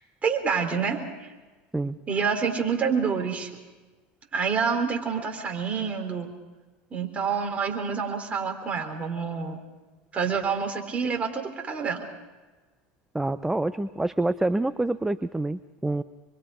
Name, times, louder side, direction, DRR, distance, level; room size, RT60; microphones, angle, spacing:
voice 1, 0.2-1.3 2.1-3.5 4.3-6.3 6.9-9.6 10.1-12.0, right 6 dB, 25° right, 2 dB, 4.2 m, -27 dB
voice 2, 13.1-16.0, right 2 dB, 5° right, 11 dB, 0.6 m, -27 dB
26.5 x 22.5 x 5.1 m, 1.2 s
supercardioid pair, 110°, 6 cm